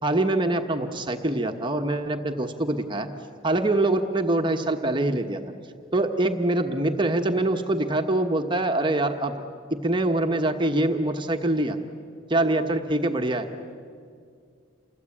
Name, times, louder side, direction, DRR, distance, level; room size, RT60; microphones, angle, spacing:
voice 1, 0.0-3.1 3.4-5.4 5.9-9.4 9.7-11.8 12.3-13.5, right 2 dB, 20° right, 5 dB, 1.1 m, -24 dB
28.5 x 22.5 x 8.6 m, 2.2 s
head